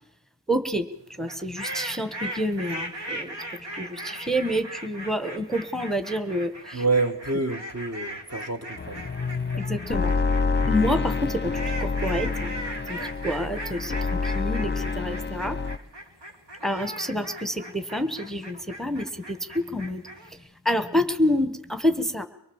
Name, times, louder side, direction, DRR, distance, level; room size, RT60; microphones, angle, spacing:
voice 1, 0.5-3.4 3.7-6.8 9.6-10.1 10.6-12.6 12.9-15.6 16.6-20.0 20.3-22.3, equal, ahead, 1.3 m, -28 dB
sound 1, 1.2-20.3, right 1 dB, 85° right, 2.8 m, -38 dB
voice 2, 6.7-9.0, right 3 dB, 35° right, 1.5 m, -27 dB
sound 2, 8.8-15.8, left 4 dB, 25° left, 0.8 m, -27 dB
24.0 x 19.5 x 7.2 m
cardioid pair, 45°, 42 cm